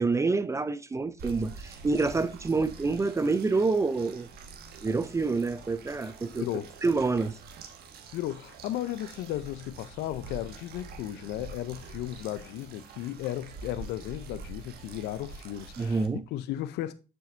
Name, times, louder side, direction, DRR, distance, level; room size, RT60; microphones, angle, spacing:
voice 1, 0.0-4.3 4.8-6.5 6.8-7.4 15.8-16.2, right 3 dB, 15° right, 0.4 m, -27 dB
sound 1, 1.2-16.1, right 4 dB, 65° right, 1.3 m, -46 dB
voice 2, 6.4-6.7 8.1-16.0 16.3-16.9, left 13 dB, 80° left, 0.5 m, -35 dB
7.1 x 6.2 x 2.5 m
cardioid pair, 110°, 17 cm